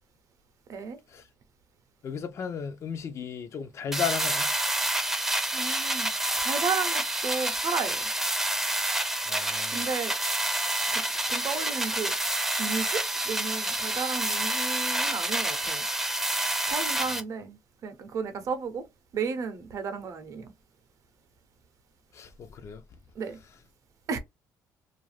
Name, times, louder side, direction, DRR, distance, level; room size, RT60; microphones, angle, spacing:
voice 1, 2.0-4.5 9.3-9.9 17.1-17.2 22.1-22.8, left 7 dB, 45° left, 0.5 m, -35 dB
sound 1, 3.9-17.2, right 1 dB, 5° right, 0.5 m, -28 dB
voice 2, 5.5-6.1 6.4-8.1 9.7-10.1 10.9-11.0 11.3-12.1 12.6-15.9 16.7-17.6 17.8-18.9 19.1-20.5 23.2-23.4 24.1-24.2, right 5 dB, 50° right, 0.6 m, -33 dB
2.5 x 2.2 x 3.2 m
cardioid pair, 120°, 7 cm